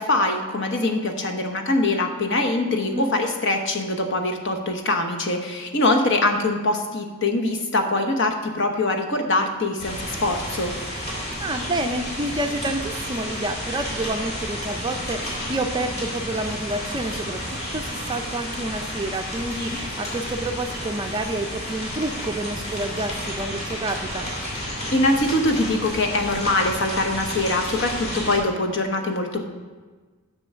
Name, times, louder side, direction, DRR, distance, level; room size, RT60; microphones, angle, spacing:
voice 1, 0.0-10.7 24.9-29.4, left 2 dB, 55° left, 4 dB, 1.1 m, -23 dB
sound 1, 9.8-28.4, equal, 30° left, 2.8 m, -31 dB
voice 2, 11.4-24.3, right 1 dB, 20° right, 5 dB, 0.5 m, -29 dB
7.7 x 6.2 x 6.7 m, 1.4 s
head